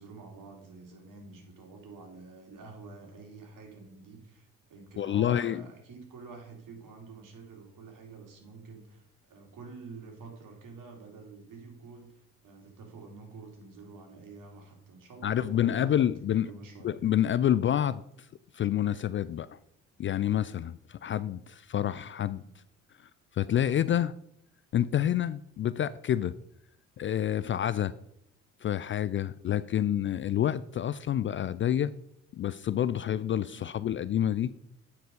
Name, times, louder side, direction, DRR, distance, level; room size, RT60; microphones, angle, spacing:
voice 1, 0.0-17.0 22.3-22.5 33.5-33.7, right 4 dB, 55° right, 2 dB, 2.7 m, -48 dB
voice 2, 5.0-5.6 15.2-16.5 16.8-18.0 18.5-19.5 20.0-22.4 23.4-24.1 24.7-26.3 27.0-27.9 28.6-31.9 32.3-34.5, left 10 dB, 35° left, 16 dB, 0.4 m, -28 dB
9.0 x 4.8 x 5.3 m, 0.72 s
hypercardioid pair, 50°, 37 cm